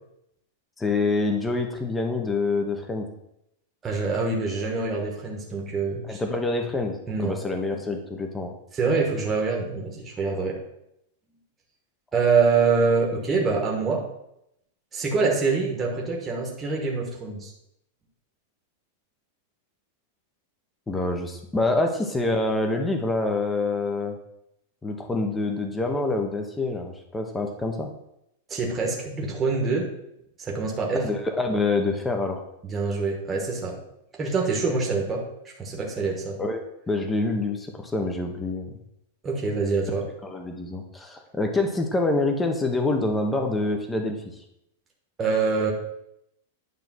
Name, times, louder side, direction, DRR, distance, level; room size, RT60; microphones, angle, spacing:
voice 1, 0.8-3.1 6.0-8.5 20.9-24.2 24.8-27.9 30.9-32.4 36.4-38.7 40.2-44.3, left 2 dB, 5° left, 4 dB, 0.7 m, -26 dB
voice 2, 3.8-6.2 7.1-7.4 8.7-10.6 12.1-14.0 14.9-17.5 28.5-29.9 30.4-31.1 32.6-33.8 34.1-35.2 35.6-36.4 39.2-40.0 45.2-45.7, right 4 dB, 15° right, -1 dB, 1.1 m, -25 dB
9.3 x 3.2 x 6.1 m, 0.80 s
supercardioid pair, 175°, 0 cm